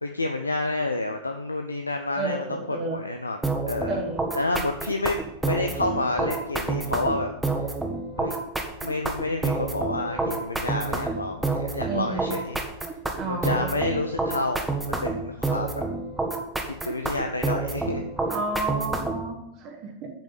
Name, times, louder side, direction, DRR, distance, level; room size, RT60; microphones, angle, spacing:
voice 1, 0.0-3.4 3.7-4.0 4.3-7.3 8.2-8.4 8.8-12.6 13.3-14.7 15.0-15.8 16.7-18.0, left 2 dB, 80° left, 5 dB, 0.5 m, -29 dB
voice 2, 2.1-3.0 3.9-4.2 11.8-12.4 13.1-13.7 18.3-20.2, right 2 dB, 40° right, 0 dB, 1.2 m, -31 dB
sound 1, 3.4-19.3, right 3 dB, 5° right, 1.2 m, -28 dB
7.4 x 5.3 x 7.1 m, 0.83 s
figure-of-eight pair, 90°, 0 cm